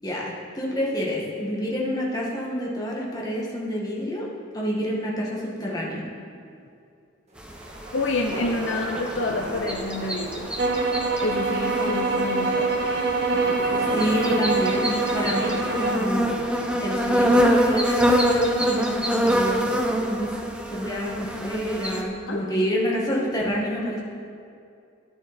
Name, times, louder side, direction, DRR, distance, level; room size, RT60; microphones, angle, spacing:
voice 1, 0.0-4.3 4.5-6.0 13.9-16.3 16.8-20.3 20.7-24.0, equal, 20° left, -4 dB, 2.0 m, -28 dB
sound 1, 7.3-17.7, right 1 dB, 35° right, 2.0 m, -37 dB
sound 2, 7.4-22.0, equal, 5° right, 0.9 m, -25 dB
voice 2, 7.9-10.5 11.2-12.7 22.3-22.4, left 2 dB, 85° left, 1 dB, 0.8 m, -28 dB
sound 3, 10.6-16.1, right 3 dB, 65° right, 1.7 m, -25 dB
12.5 x 10.0 x 4.3 m, 2.4 s
head